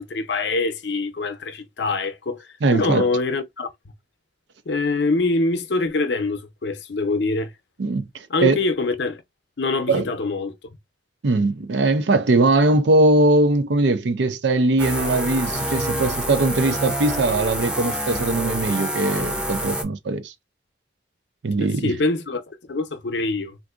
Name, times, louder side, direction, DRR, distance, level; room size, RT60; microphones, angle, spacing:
voice 1, 0.0-3.7 4.7-7.5 8.3-9.2 9.6-10.5 21.6-23.6, left 3 dB, 70° left, 0.6 m, -24 dB
voice 2, 2.6-3.1 7.8-8.6 9.9-10.1 11.2-20.3 21.4-21.9, right 2 dB, 75° right, 0.5 m, -20 dB
sound 1, 14.8-19.8, right 1 dB, 5° right, 0.5 m, -27 dB
3.5 x 2.6 x 2.4 m
head